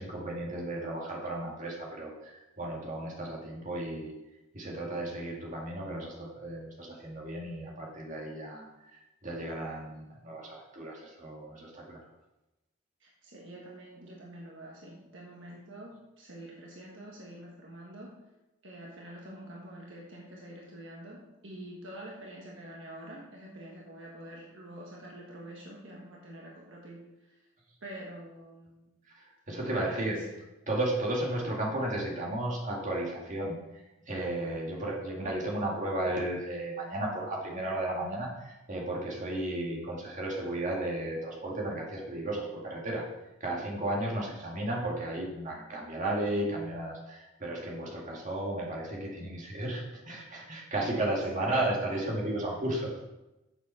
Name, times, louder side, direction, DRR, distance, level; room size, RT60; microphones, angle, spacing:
voice 1, 0.0-4.2 4.5-12.0 29.1-30.2 30.7-33.6 34.1-43.0 43.4-52.9, right 1 dB, 35° right, -3 dB, 2.1 m, -34 dB
voice 2, 13.0-18.2 18.6-27.4 27.8-28.9 29.5-30.4 51.3-51.6 51.9-52.0, right 1 dB, 55° right, -3 dB, 1.5 m, -46 dB
7.4 x 7.1 x 5.7 m, 0.98 s
head